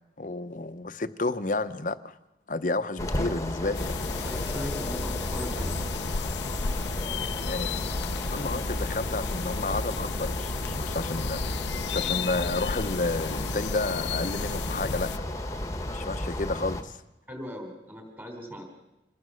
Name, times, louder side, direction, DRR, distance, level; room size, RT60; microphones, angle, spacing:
voice 1, 0.2-2.2 2.5-4.0 7.4-7.7 8.3-15.1 15.9-16.9, left 2 dB, 45° left, 12 dB, 0.9 m, -31 dB
sound 1, 3.0-16.8, left 1 dB, 20° left, 1.4 m, -33 dB
sound 2, 3.7-15.2, left 5 dB, 80° left, 0.7 m, -34 dB
voice 2, 4.2-5.8 17.3-18.6, equal, 10° right, 3 dB, 3.7 m, -39 dB
26.5 x 18.5 x 6.4 m, 0.95 s
head